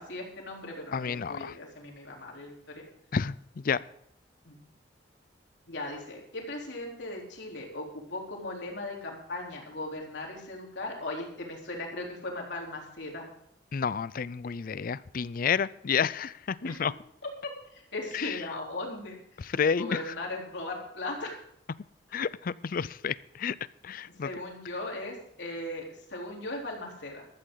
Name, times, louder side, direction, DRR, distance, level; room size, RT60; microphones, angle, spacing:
voice 1, 0.0-2.8 4.5-4.6 5.7-13.3 16.6-16.7 17.2-21.4 22.1-22.2 24.0-27.3, left 2 dB, 70° left, -1 dB, 3.6 m, -38 dB
voice 2, 0.9-1.6 3.1-3.8 13.7-16.9 18.1-18.4 19.4-20.0 22.1-23.6 23.8-24.3, left 6 dB, 50° left, 19 dB, 0.4 m, -30 dB
14.0 x 13.0 x 3.9 m, 0.69 s
head